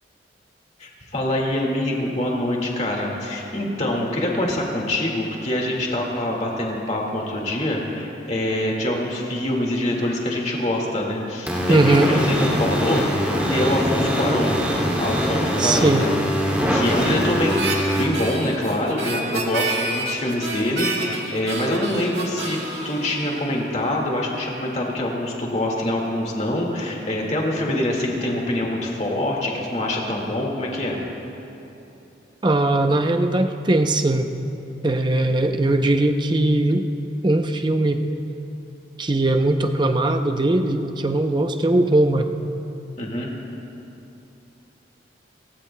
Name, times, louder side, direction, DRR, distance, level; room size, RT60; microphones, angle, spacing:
voice 1, 0.8-14.6 15.0-16.1 16.7-22.6 22.8-31.0 43.0-43.3, left 1 dB, 35° left, -1 dB, 1.9 m, -25 dB
sound 1, 11.5-18.0, equal, 10° right, 2.5 m, -22 dB
voice 2, 11.7-12.1 15.6-16.1 32.4-34.3 34.8-36.9 37.2-38.0 39.0-42.3, right 2 dB, 25° right, 6 dB, 0.6 m, -19 dB
Harmonica, 17.5-24.0, right 3 dB, 70° right, 1.9 m, -29 dB
28.5 x 15.5 x 2.2 m, 3.0 s
head